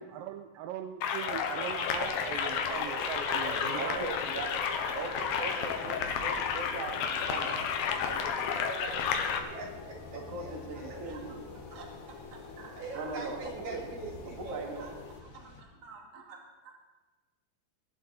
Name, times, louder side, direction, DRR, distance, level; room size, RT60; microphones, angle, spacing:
voice 1, 0.0-4.1, right 10 dB, 85° right, 6 dB, 2.3 m, -40 dB
sound 1, 1.0-9.4, left 7 dB, 85° left, 3.0 m, -32 dB
sound 2, 1.5-15.2, left 4 dB, 60° left, 2.8 m, -48 dB
voice 2, 2.4-4.1 4.5-5.7 7.0-7.3 8.5-9.7 10.1-11.1 12.8-15.1, right 3 dB, 70° right, -2 dB, 4.8 m, -45 dB
Thunder / Rain, 2.7-15.6, left 3 dB, 45° left, 1.1 m, -51 dB
voice 3, 3.7-7.6 7.9-8.7 10.1-11.4 11.7-13.4 13.7-13.8 14.4-14.9 15.3-16.7, right 3 dB, 45° right, 0 dB, 3.1 m, -41 dB
20.0 x 11.5 x 4.3 m, 1.2 s
omnidirectional pair, 4.1 m